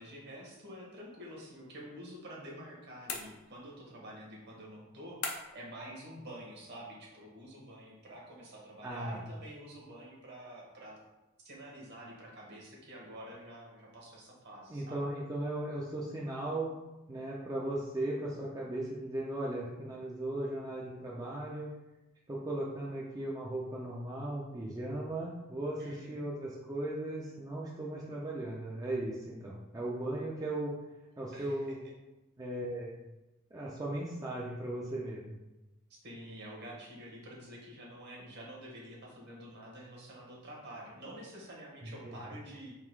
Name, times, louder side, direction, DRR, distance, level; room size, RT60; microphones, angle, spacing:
voice 1, 0.0-11.0 11.4-15.0 25.8-26.3 31.3-31.8 35.9-42.7, right 1 dB, 50° right, -3 dB, 1.2 m, -48 dB
sound 1, 3.1-3.8 5.2-5.7, left 5 dB, 85° left, 0.6 m, -40 dB
voice 2, 8.8-9.2 14.7-16.7 17.1-21.7 22.3-30.7 31.2-31.8 32.4-32.9 33.5-35.3 41.8-42.2, right 1 dB, 15° right, -4 dB, 0.4 m, -37 dB
3.7 x 2.4 x 4.5 m, 1.0 s
head